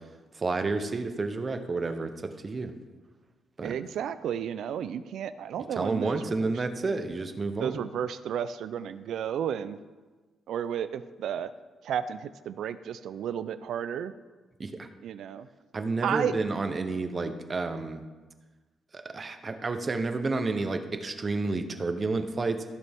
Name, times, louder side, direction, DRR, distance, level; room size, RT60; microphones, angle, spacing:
voice 1, 0.4-2.7 3.6-3.8 5.8-7.8 14.6-14.9 15.7-18.0 18.9-22.6, right 3 dB, 25° right, 8 dB, 0.7 m, -30 dB
voice 2, 3.6-6.5 7.6-9.8 10.5-11.5 11.8-14.1 15.0-15.5 16.0-16.3, right 9 dB, 70° right, 13 dB, 0.4 m, -32 dB
15.0 x 6.8 x 3.5 m, 1.3 s
cardioid pair, 145°, 0 cm